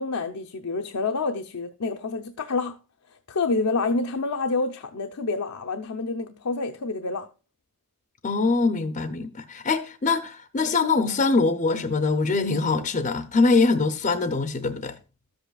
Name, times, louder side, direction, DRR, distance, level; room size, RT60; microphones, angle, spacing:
voice 1, 0.0-2.8 3.3-7.3, left 3 dB, 85° left, 0.7 m, -28 dB
voice 2, 8.2-14.9, left 3 dB, 35° left, 0.6 m, -23 dB
13.0 x 7.9 x 2.3 m
head